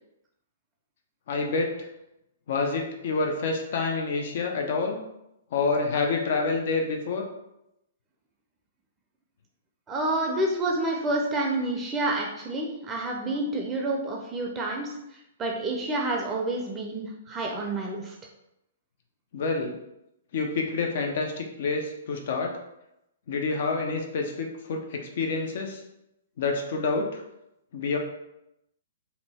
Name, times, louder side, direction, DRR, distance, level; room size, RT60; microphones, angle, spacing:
voice 1, 1.3-1.7 2.5-5.0 5.5-7.2 19.3-19.7 20.3-22.5 23.3-25.8 26.4-27.2 27.7-28.0, left 4 dB, 55° left, 2 dB, 0.6 m, -28 dB
voice 2, 9.9-18.1, right 2 dB, 20° right, 0 dB, 0.5 m, -29 dB
2.8 x 2.2 x 4.1 m, 0.85 s
hypercardioid pair, 125°, 0 cm